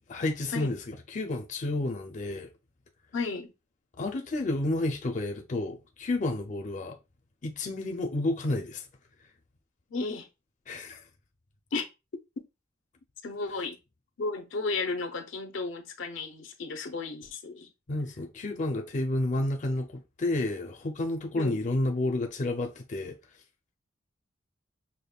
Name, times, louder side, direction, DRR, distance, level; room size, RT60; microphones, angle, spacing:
voice 1, 0.1-2.5 4.0-7.0 7.4-8.9 10.7-11.0 17.9-23.2, left 2 dB, 40° left, 0.5 m, -30 dB
voice 2, 3.1-3.5 9.9-10.3 11.7-11.9 13.2-13.8 14.2-17.7 21.3-21.6, left 3 dB, 80° left, 0.6 m, -33 dB
5.2 x 2.2 x 2.3 m
head